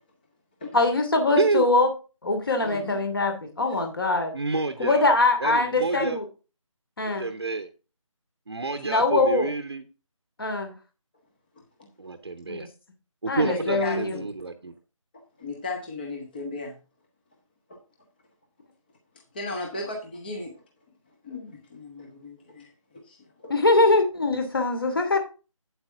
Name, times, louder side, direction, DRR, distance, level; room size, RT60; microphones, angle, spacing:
voice 1, 0.7-1.9 2.2-4.3 4.8-6.2 7.0-7.3 8.8-9.5 10.4-10.7 12.5-12.7 13.3-14.2 23.5-25.2, left 2 dB, 45° left, 2.7 m, -23 dB
voice 2, 2.6-3.0 8.7-8.8 11.8-11.9 13.4-14.3 15.4-16.8 17.7-17.8 19.3-20.6 21.2-23.5, left 2 dB, 15° left, 1.0 m, -36 dB
voice 3, 4.3-5.1 5.4-6.2 7.2-7.7 8.5-9.8 12.0-12.7 13.2-14.7, right 3 dB, 50° right, 1.0 m, -28 dB
8.9 x 7.9 x 3.6 m
figure-of-eight pair, 160°, 17 cm